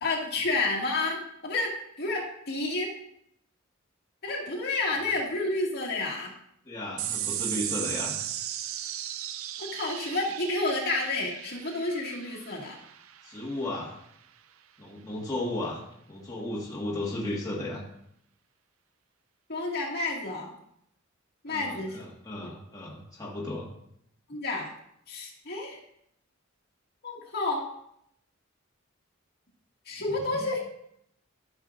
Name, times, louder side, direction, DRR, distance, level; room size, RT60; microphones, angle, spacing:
voice 1, 0.0-1.7 2.0-2.9 4.2-6.3 9.6-12.8 19.5-20.5 21.4-22.0 22.4-22.5 24.3-24.7 25.1-25.8 27.0-27.6 29.9-30.6, left 2 dB, 55° left, -3 dB, 2.0 m, -30 dB
voice 2, 6.7-8.2 13.2-13.9 14.8-15.8 16.1-17.8 21.5-23.7, left 1 dB, 20° left, -5 dB, 1.6 m, -34 dB
sound 1, 7.0-13.8, right 11 dB, 90° right, 0.5 m, -36 dB
13.5 x 6.4 x 2.5 m, 0.74 s
head